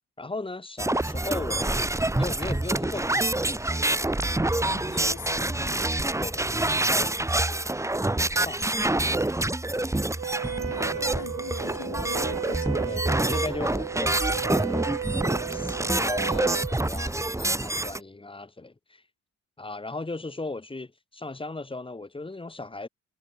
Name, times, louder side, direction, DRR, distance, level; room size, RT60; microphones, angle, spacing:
voice 1, 0.2-1.9 2.1-3.7 6.2-7.7 8.3-9.5 10.9-11.1 12.9-13.0 13.3-14.9 15.5-19.0 19.6-22.9, left 2 dB, 15° left, 3.5 m, -37 dB
sound 1, 0.8-18.0, right 2 dB, 10° right, 2.0 m, -27 dB
voice 2, 4.5-5.8 10.4-13.2, left 13 dB, 75° left, 4.3 m, -43 dB
Wind instrument woodwind instrument, 10.2-16.8, right 8 dB, 50° right, 1.6 m, -34 dB
cardioid pair, 90°, 30 cm